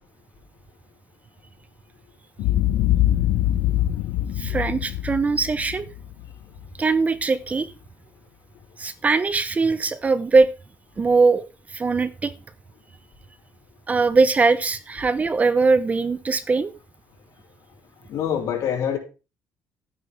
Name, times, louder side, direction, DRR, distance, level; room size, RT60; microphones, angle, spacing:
Boom, 2.4-6.7, left 13 dB, 85° left, 0.7 m, -23 dB
voice 1, 4.4-5.9 6.8-7.7 8.8-10.5 11.0-11.4 11.7-12.3 13.9-16.7, right 4 dB, 25° right, 15 dB, 0.8 m, -21 dB
voice 2, 18.1-19.0, left 9 dB, 65° left, 0 dB, 5.1 m, -25 dB
15.0 x 9.3 x 3.5 m, 0.31 s
cardioid pair, 120°, 6 cm